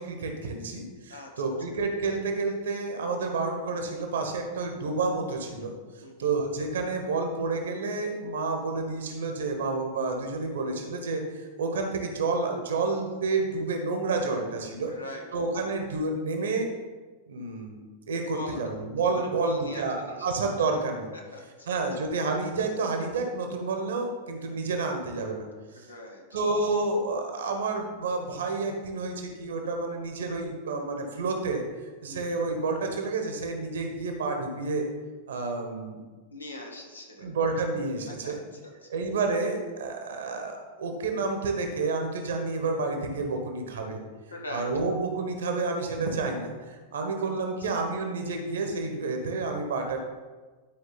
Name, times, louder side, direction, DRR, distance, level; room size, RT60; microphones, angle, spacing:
voice 1, 0.0-5.7 6.2-14.9 15.3-16.7 17.3-17.8 18.1-21.1 21.7-25.4 26.3-31.6 32.0-34.9 35.3-36.0 37.2-38.4 38.9-44.0 44.5-50.0, right 3 dB, 65° right, 4 dB, 1.4 m, -29 dB
voice 2, 14.9-15.2 18.3-18.6 19.2-20.2 21.3-21.7 25.7-26.2 32.0-32.2 36.3-37.3 38.2-38.3 38.6-39.0 44.3-44.7, left 1 dB, 80° left, 0 dB, 1.5 m, -41 dB
11.5 x 4.9 x 4.1 m, 1.3 s
figure-of-eight pair, 90°, 0 cm